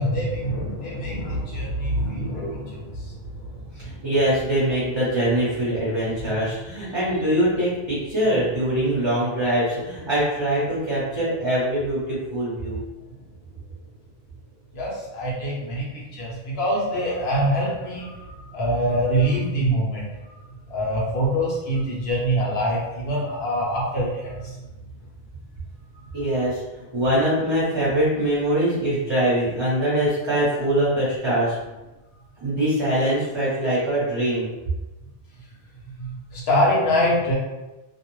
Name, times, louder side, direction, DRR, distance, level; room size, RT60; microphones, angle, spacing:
voice 1, 0.0-4.1 14.7-20.1 20.7-24.6 36.0-37.3, equal, 70° left, -4 dB, 1.0 m, -25 dB
voice 2, 3.7-12.8 26.1-31.6 32.4-34.5, right 1 dB, 30° right, -9 dB, 0.7 m, -23 dB
2.5 x 2.0 x 3.0 m, 1.1 s
omnidirectional pair, 1.1 m